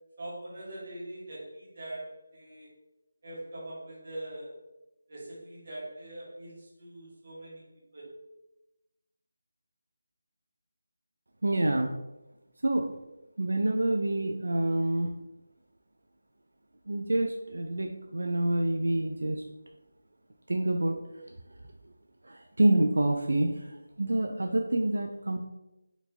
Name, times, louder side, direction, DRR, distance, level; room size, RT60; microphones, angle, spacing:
voice 1, 0.2-2.7 3.2-4.6 5.1-8.1, right 1 dB, 40° right, -5 dB, 1.3 m, -42 dB
voice 2, 11.4-11.9 12.6-12.9 13.4-15.1 16.9-19.4 20.5-21.0 22.2-25.4, right 1 dB, 80° right, 3 dB, 0.4 m, -27 dB
4.4 x 2.6 x 2.7 m, 0.99 s
figure-of-eight pair, 175°, 0 cm